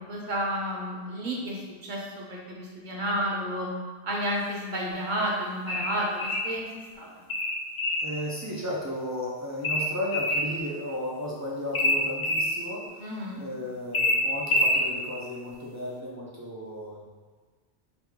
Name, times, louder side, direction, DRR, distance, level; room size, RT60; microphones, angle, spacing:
voice 1, 0.0-3.7 4.0-6.7 6.9-7.1 13.0-13.4, equal, 50° right, -3 dB, 0.9 m, -31 dB
sound 1, 5.7-6.5 7.3-8.1 9.6-10.5 11.7-12.5 13.9-14.8, left 1 dB, 65° left, 0.7 m, -25 dB
voice 2, 8.0-13.1 13.4-17.0, left 1 dB, 25° right, -5 dB, 0.4 m, -34 dB
3.5 x 2.9 x 3.6 m, 1.5 s
omnidirectional pair, 1.0 m